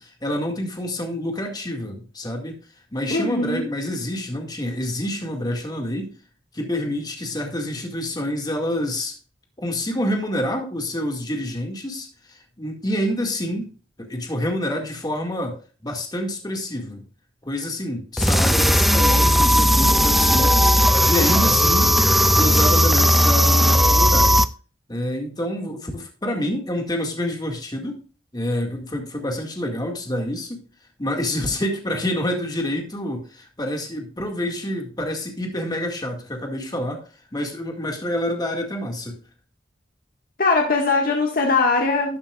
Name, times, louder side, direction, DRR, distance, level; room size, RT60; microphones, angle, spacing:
voice 1, 0.0-2.6 2.9-6.1 6.5-9.2 9.6-13.7 14.0-15.6 15.8-17.0 17.4-21.9 22.4-24.4 24.9-28.0 28.3-30.6 31.0-37.0 37.3-39.2, left 1 dB, 25° left, 3 dB, 2.0 m, -27 dB
voice 2, 3.1-3.7 40.4-42.2, left 3 dB, 55° left, 0 dB, 1.7 m, -20 dB
sound 1, 18.2-24.5, equal, ahead, 0.4 m, -16 dB
13.0 x 8.7 x 2.4 m, 0.38 s
head